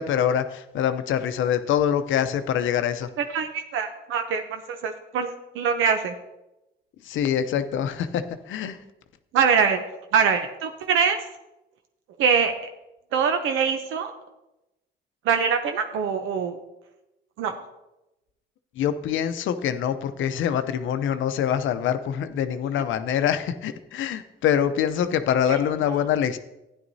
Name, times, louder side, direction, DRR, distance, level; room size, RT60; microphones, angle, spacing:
voice 1, 0.0-3.1 7.1-8.8 18.8-26.4, left 9 dB, 75° left, 10 dB, 0.7 m, -25 dB
voice 2, 3.2-6.1 9.3-9.8 10.1-11.2 12.2-12.5 13.1-14.1 15.2-16.6 17.4-17.5 25.5-25.6 25.8-26.0, right 6 dB, 85° right, 6 dB, 0.7 m, -23 dB
12.5 x 10.0 x 2.7 m, 0.95 s
cardioid pair, 90°, 20 cm